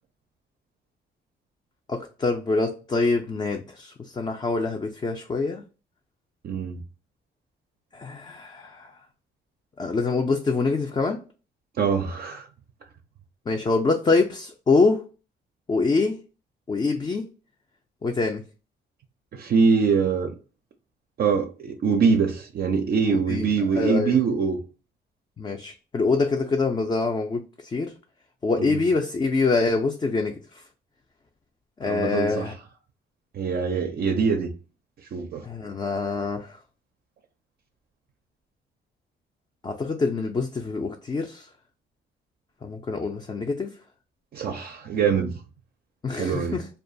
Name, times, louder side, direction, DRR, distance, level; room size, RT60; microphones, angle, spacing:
voice 1, 1.9-5.6 7.9-8.9 9.8-11.2 13.5-15.0 15.7-16.2 16.7-17.2 18.0-18.4 23.3-23.5 23.8-24.2 25.4-27.9 28.4-30.3 31.8-32.5 35.4-36.6 39.6-41.5 42.6-43.7 46.0-46.6, left 3 dB, 20° left, 0.4 m, -25 dB
voice 2, 6.4-6.8 11.8-12.5 19.3-20.3 21.2-24.6 28.6-28.8 31.8-32.5 33.3-34.5 35.1-35.4 44.3-45.3 46.1-46.6, right 5 dB, 50° right, 0.4 m, -23 dB
2.4 x 2.2 x 2.6 m
cardioid pair, 90°, 20 cm